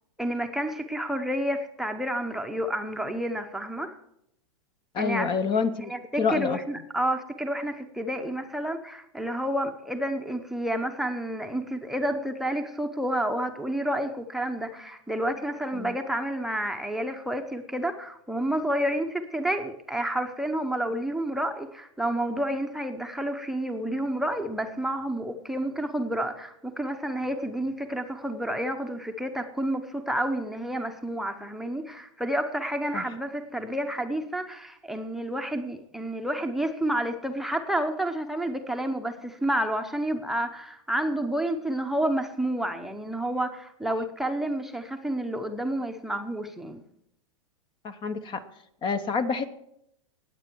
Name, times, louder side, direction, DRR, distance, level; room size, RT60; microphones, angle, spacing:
voice 1, 0.2-3.9 5.0-5.3 5.9-46.8, right 1 dB, ahead, 8 dB, 0.8 m, -30 dB
voice 2, 4.9-5.9 6.2-6.6 15.7-16.0 32.9-33.0 47.8-48.4 48.8-49.5, left 5 dB, 30° left, 12 dB, 0.9 m, -27 dB
19.0 x 8.3 x 4.6 m, 0.77 s
hypercardioid pair, 115°, 17 cm